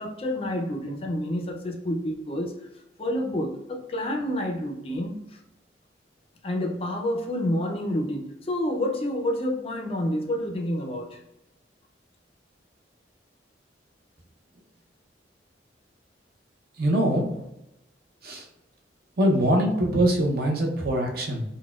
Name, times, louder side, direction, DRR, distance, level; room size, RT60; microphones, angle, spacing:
voice 1, 0.0-2.5 3.0-5.4 6.4-11.2, left 1 dB, 30° left, 2 dB, 0.4 m, -29 dB
voice 2, 16.8-17.3 18.2-18.5 19.2-21.4, right 1 dB, 55° right, 1 dB, 0.6 m, -23 dB
4.1 x 2.1 x 2.3 m, 0.88 s
head